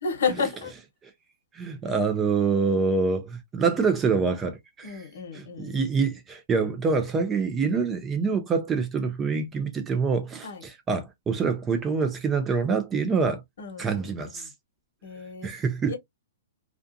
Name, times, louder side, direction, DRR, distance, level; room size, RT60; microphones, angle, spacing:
voice 1, 0.0-0.7 4.8-5.8 10.4-10.6 13.6-14.5 15.0-15.5 15.9-16.0, left 5 dB, 70° left, 1.0 m, -32 dB
voice 2, 1.5-5.0 5.3-13.4 13.8-14.5 15.4-15.9, right 5 dB, 15° right, 0.4 m, -26 dB
2.4 x 2.3 x 2.5 m
hypercardioid pair, 165°, 0 cm